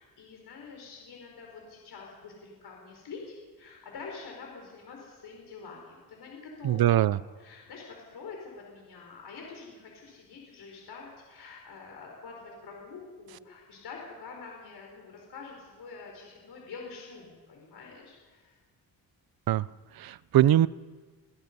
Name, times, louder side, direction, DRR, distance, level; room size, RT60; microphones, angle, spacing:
voice 1, 0.0-18.6, left 4 dB, 75° left, 0 dB, 5.0 m, -46 dB
voice 2, 6.6-7.2 19.5-19.7 20.0-20.7, right 13 dB, 65° right, 19 dB, 0.6 m, -22 dB
26.5 x 18.5 x 5.5 m, 1.4 s
cardioid pair, 105°, 39 cm